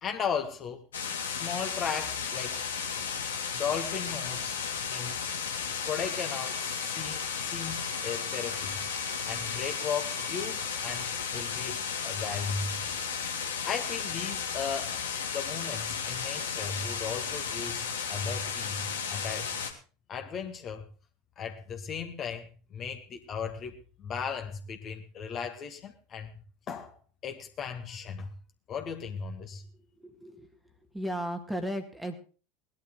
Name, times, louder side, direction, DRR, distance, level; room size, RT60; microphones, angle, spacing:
voice 1, 0.0-0.8 1.3-2.6 3.5-5.2 5.9-8.8 9.3-12.8 13.7-15.0 15.3-19.5 20.1-20.9 21.4-23.7 24.0-26.3 26.7-27.0 27.2-28.3 28.7-29.6, left 6 dB, 35° left, 4 dB, 1.9 m, -36 dB
sound 1, 0.9-19.7, left 6 dB, 70° left, 2.0 m, -34 dB
sound 2, 6.0-11.0, right 9 dB, 50° right, 2.9 m, -49 dB
voice 2, 30.0-30.6 30.9-32.1, equal, 5° right, 7 dB, 1.9 m, -35 dB
19.0 x 11.5 x 3.9 m, 0.37 s
figure-of-eight pair, 75°, 0 cm